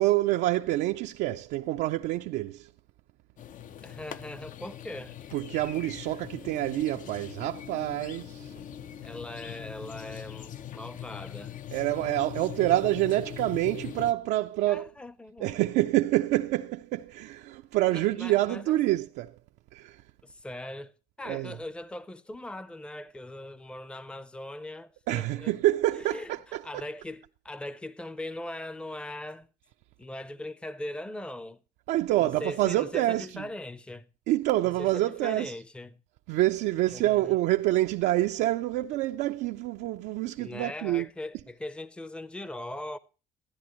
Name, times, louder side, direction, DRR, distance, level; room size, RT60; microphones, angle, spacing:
voice 1, 0.0-2.7 5.3-8.5 11.7-14.9 15.4-19.4 19.7-20.0 21.3-21.6 25.1-26.8 31.9-33.4 34.3-35.5 36.3-41.1, right 16 dB, 85° right, 0.5 m, -27 dB
sound 1, 3.4-14.1, left 10 dB, 50° left, 0.5 m, -42 dB
voice 2, 3.8-5.2 9.0-11.6 14.7-15.6 17.9-18.8 20.2-25.5 25.9-29.5 30.0-31.6 32.2-34.1 34.8-36.0 36.9-37.4 40.4-43.0, left 1 dB, 5° left, 0.6 m, -40 dB
14.0 x 10.5 x 3.0 m
cardioid pair, 110°, 17 cm